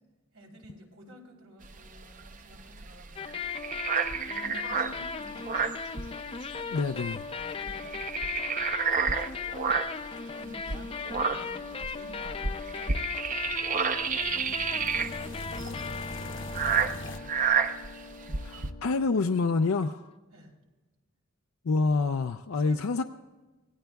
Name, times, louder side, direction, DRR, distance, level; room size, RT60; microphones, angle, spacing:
voice 1, 0.3-3.7 4.2-5.8 7.5-8.0 9.2-9.8 10.4-13.0 14.1-17.6 20.3-20.5 22.5-23.0, equal, 85° right, -1 dB, 3.5 m, -51 dB
sound 1, 1.6-6.6 6.9-7.1 7.4-10.1 10.6-18.7, right 6 dB, 40° right, 0.6 m, -30 dB
sound 2, 3.2-20.1, left 5 dB, 25° left, 0.4 m, -38 dB
voice 2, 6.7-7.2 18.4-20.1 21.6-23.0, left 4 dB, 85° left, 6 dB, 0.5 m, -27 dB
sound 3, 13.3-17.2, left 1 dB, 60° left, 0.9 m, -42 dB
25.0 x 18.0 x 2.3 m, 1.2 s
head